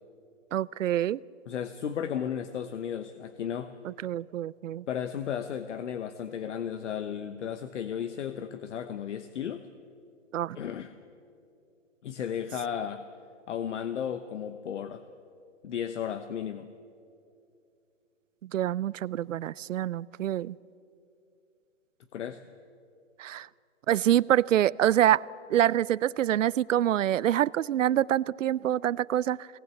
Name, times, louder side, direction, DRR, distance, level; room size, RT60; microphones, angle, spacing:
voice 1, 0.5-1.2 3.8-4.8 10.3-10.6 18.5-20.5 23.2-23.5 23.9-25.2 25.5-29.5, right 12 dB, 80° right, 22 dB, 0.6 m, -26 dB
voice 2, 1.5-3.7 4.9-9.7 10.5-10.9 12.0-13.0 13.5-15.0 15.6-16.7 22.1-22.4, left 8 dB, 65° left, 10 dB, 1.0 m, -34 dB
20.0 x 18.5 x 8.1 m, 2.6 s
hypercardioid pair, 155°, 38 cm